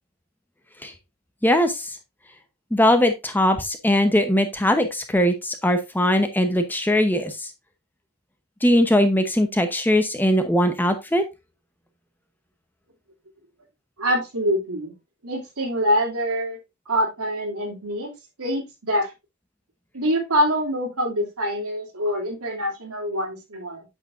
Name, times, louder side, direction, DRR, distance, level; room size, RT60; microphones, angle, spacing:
voice 1, 1.4-2.0 2.7-7.5 8.6-11.2, left 1 dB, 10° left, 7 dB, 0.8 m, -20 dB
voice 2, 14.0-14.9 15.2-16.6 16.9-18.1 18.4-19.1 19.9-23.8, equal, 80° right, 1 dB, 2.8 m, -25 dB
8.3 x 6.7 x 2.5 m, 0.23 s
head